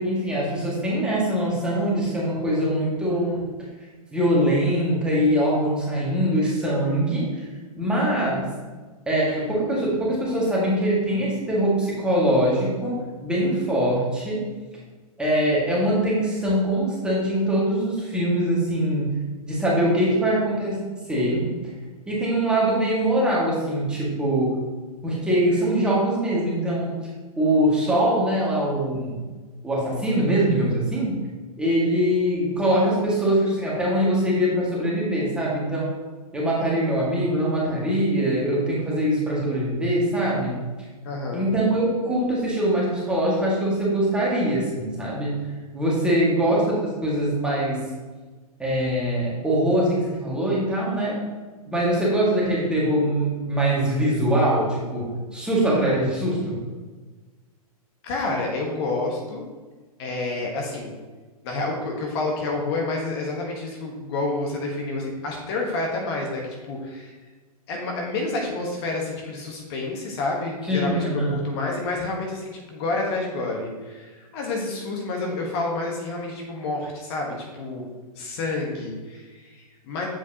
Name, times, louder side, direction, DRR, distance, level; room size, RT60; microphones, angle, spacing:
voice 1, 0.0-3.4 4.1-7.4 7.7-8.5 9.0-14.5 15.2-19.1 19.4-21.5 22.1-24.6 25.0-26.9 27.4-29.2 29.6-31.2 31.6-35.9 36.3-40.9 41.3-45.3 45.7-47.9 48.6-51.2 51.7-56.6 70.6-71.4, right 1 dB, 5° right, -6 dB, 1.7 m, -23 dB
voice 2, 41.0-41.5 58.0-59.4 60.0-61.0 61.4-67.1 67.7-77.9 78.2-80.1, left 2 dB, 45° left, 0 dB, 1.1 m, -29 dB
7.4 x 4.6 x 2.8 m, 1.3 s
hypercardioid pair, 120°, 19 cm